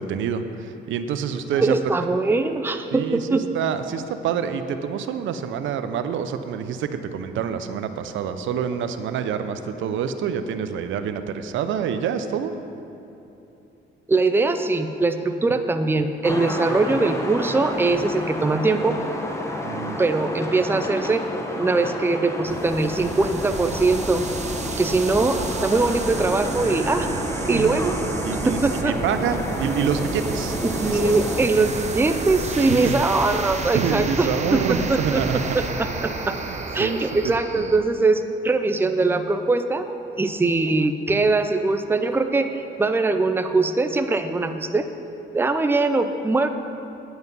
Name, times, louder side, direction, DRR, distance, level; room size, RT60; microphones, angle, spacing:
voice 1, 0.0-1.9 2.9-12.5 19.6-20.0 27.5-27.8 28.2-31.0 32.7-33.0 33.7-35.6 36.5-37.0 37.2-37.7, right 7 dB, 75° right, 9 dB, 0.6 m, -27 dB
voice 2, 1.6-3.4 14.1-19.0 20.0-21.2 21.6-24.3 24.7-27.1 27.5-28.0 28.4-29.0 30.6-34.6 34.9-35.2 35.5-36.4 36.7-39.9 40.2-44.9 45.3-46.5, right 3 dB, 10° right, 8 dB, 0.5 m, -22 dB
sound 1, 16.2-31.5, left 1 dB, 15° left, 1.1 m, -31 dB
sound 2, 22.4-37.8, right 4 dB, 35° right, 0.8 m, -31 dB
9.4 x 7.9 x 5.3 m, 2.9 s
cardioid pair, 90°, 20 cm